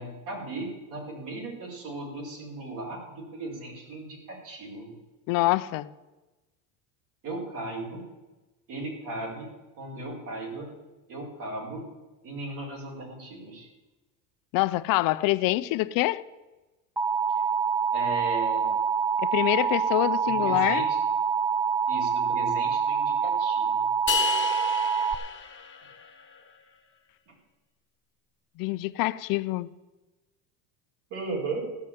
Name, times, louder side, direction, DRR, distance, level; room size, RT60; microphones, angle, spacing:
voice 1, 0.0-4.9 7.2-8.0 8.7-9.5 9.8-10.7 11.1-11.8 12.2-13.7 17.9-18.7 20.2-21.0 21.9-23.8 27.3-27.4 31.1-31.7, right 2 dB, 55° right, 5.1 m, -36 dB
voice 2, 5.3-5.9 14.5-16.2 19.2-20.9 28.6-29.7, left 18 dB, 60° left, 0.7 m, -25 dB
Alarm, 17.0-25.1, right 6 dB, 5° right, 0.6 m, -26 dB
sound 1, 24.1-26.4, left 6 dB, 30° left, 2.1 m, -31 dB
15.5 x 6.4 x 8.7 m
supercardioid pair, 110°, 38 cm